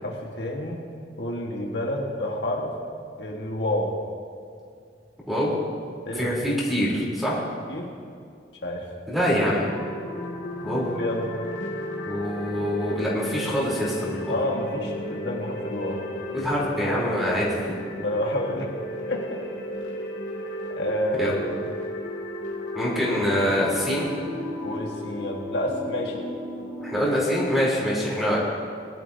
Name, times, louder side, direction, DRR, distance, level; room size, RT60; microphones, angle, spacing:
voice 1, 0.0-0.8 1.2-2.7 3.2-3.9 6.0-6.4 7.7-7.9 8.6-8.9 10.9-11.3 14.3-16.0 18.0-18.7 19.1-19.4 20.7-21.6 23.1-23.2 24.6-26.2, left 1 dB, 70° left, -1 dB, 1.5 m, -29 dB
voice 2, 6.1-7.4 9.1-9.7 10.6-10.9 12.1-14.4 16.3-17.6 21.2-21.4 22.7-24.1 26.8-28.4, equal, ahead, -6 dB, 3.4 m, -25 dB
sound 1, 9.6-27.1, left 1 dB, 90° left, 2.3 m, -34 dB
19.5 x 12.0 x 2.7 m, 2.3 s
head